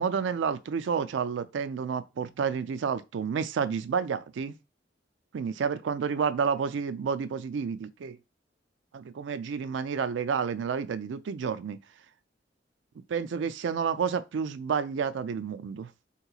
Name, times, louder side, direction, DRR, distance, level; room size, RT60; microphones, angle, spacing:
voice 1, 0.0-4.5 5.3-8.2 8.9-11.8 13.0-15.9, right 6 dB, 85° right, 0.4 m, -30 dB
3.6 x 3.0 x 2.3 m
head